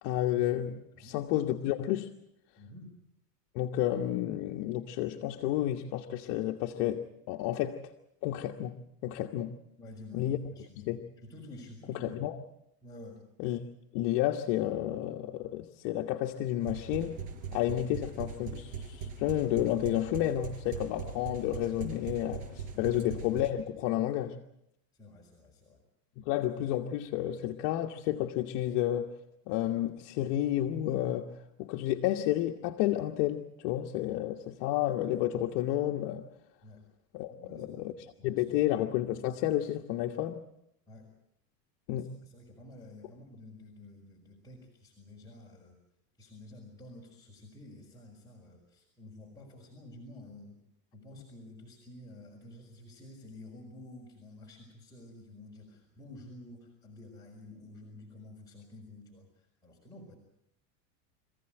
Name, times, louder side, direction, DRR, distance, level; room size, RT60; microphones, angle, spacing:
voice 1, 0.0-2.1 3.5-7.8 8.2-8.8 9.0-9.5 10.1-10.4 10.8-11.0 11.9-12.4 13.4-13.6 13.9-17.2 17.5-24.4 26.2-29.1 29.5-31.3 31.6-36.2 37.1-37.9 38.2-40.4 41.9-42.1, left 13 dB, 60° left, 3 dB, 1.5 m, -31 dB
voice 2, 2.6-2.9 9.8-10.8 11.2-12.1 12.8-13.2 22.7-23.0 24.9-25.8 36.6-36.8 37.3-38.7 40.9-41.1 41.9-45.8 46.2-50.6 50.9-60.2, left 1 dB, 10° left, -3 dB, 5.1 m, -50 dB
sound 1, 16.6-23.5, right 6 dB, 65° right, 5.4 m, -40 dB
26.0 x 15.5 x 9.0 m, 0.80 s
supercardioid pair, 135°, 47 cm